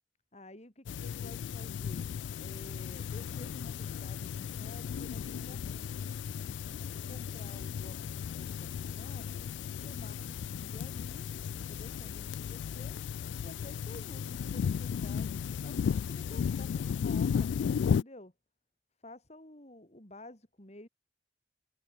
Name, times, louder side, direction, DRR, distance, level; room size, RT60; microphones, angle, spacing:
voice 1, 0.3-2.1 2.4-6.2 6.7-9.4 9.8-11.3 11.7-13.0 13.4-15.3 15.6-18.3 19.0-20.9, left 1 dB, 35° left, 3.4 m, -52 dB
sound 1, 0.9-18.0, left 7 dB, 75° left, 0.3 m, -35 dB
head